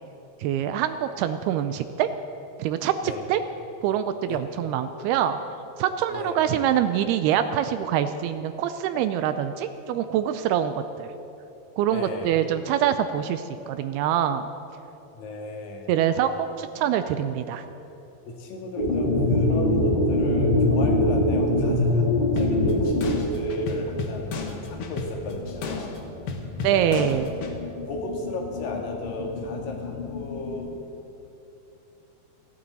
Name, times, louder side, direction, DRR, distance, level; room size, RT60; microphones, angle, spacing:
voice 1, 0.4-2.1 2.6-3.4 3.8-5.4 5.8-11.1 11.8-14.5 15.9-16.3 16.6-17.6 26.6-27.3, right 10 dB, 80° right, 10 dB, 2.4 m, -25 dB
voice 2, 6.1-6.6 11.9-12.4 15.1-16.4 18.3-22.9 23.3-24.3 24.6-26.0 26.7-27.1 27.9-30.7, left 2 dB, 60° left, 1 dB, 3.4 m, -34 dB
sound 1, 18.8-24.1 24.6-24.7 24.9-25.0 25.2-26.0 26.3-30.6, left 1 dB, 20° left, 1.6 m, -25 dB
sound 2, 22.4-27.6, left 3 dB, 90° left, 1.2 m, -34 dB
29.5 x 11.5 x 4.1 m, 2.8 s
omnidirectional pair, 4.7 m